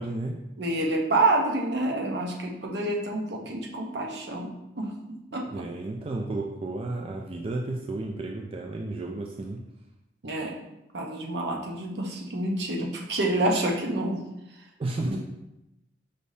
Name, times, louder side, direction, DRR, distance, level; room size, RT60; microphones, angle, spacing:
voice 1, 0.0-0.4 5.5-9.6 14.8-15.2, right 2 dB, 30° right, 1 dB, 0.3 m, -32 dB
voice 2, 0.6-5.7 10.2-10.6 10.9-14.2 15.1-15.2, right 2 dB, 65° right, 1 dB, 0.8 m, -28 dB
5.2 x 3.4 x 2.7 m, 0.89 s
head